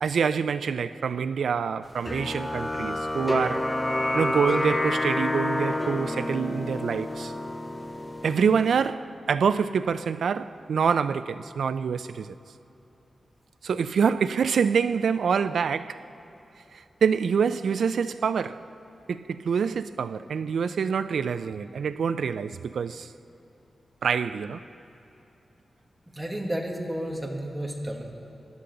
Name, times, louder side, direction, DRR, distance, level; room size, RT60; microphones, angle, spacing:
voice 1, 0.0-3.7 4.1-7.3 8.2-12.3 13.6-16.0 16.7-18.6 19.1-23.1 24.0-24.6, right 6 dB, 85° right, 0.3 m, -26 dB
sound 1, 2.0-8.9, left 1 dB, 15° left, 0.4 m, -29 dB
voice 2, 26.1-28.0, right 1 dB, 10° right, 1.3 m, -31 dB
18.5 x 11.5 x 3.8 m
wide cardioid pair, 165°, 0 cm